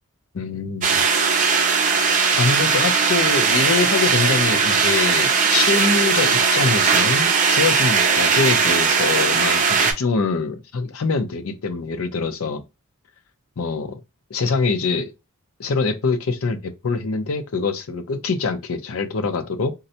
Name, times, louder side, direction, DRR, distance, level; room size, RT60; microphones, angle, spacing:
voice 1, 0.3-1.0 2.3-12.6 13.6-14.0 14.3-15.1 15.6-19.7, left 4 dB, 80° left, 0.6 m, -24 dB
sound 1, 0.8-9.9, right 5 dB, 35° right, 0.5 m, -18 dB
3.8 x 2.1 x 2.7 m
head